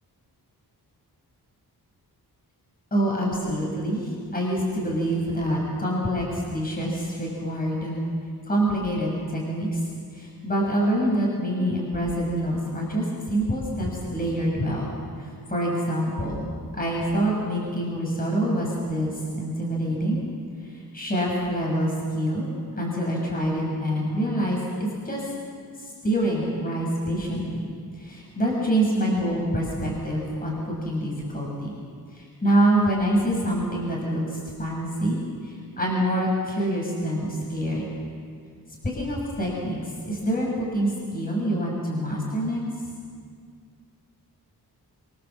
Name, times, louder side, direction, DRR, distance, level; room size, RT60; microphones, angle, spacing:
voice 1, 2.9-8.0 8.5-9.8 10.1-14.9 15.2-20.2 20.6-25.2 25.8-27.7 27.9-31.8 32.1-37.9 38.8-42.6, right 1 dB, 20° left, -3 dB, 6.6 m, -26 dB
27.5 x 24.0 x 7.6 m, 2.1 s
wide cardioid pair, 140°, 39 cm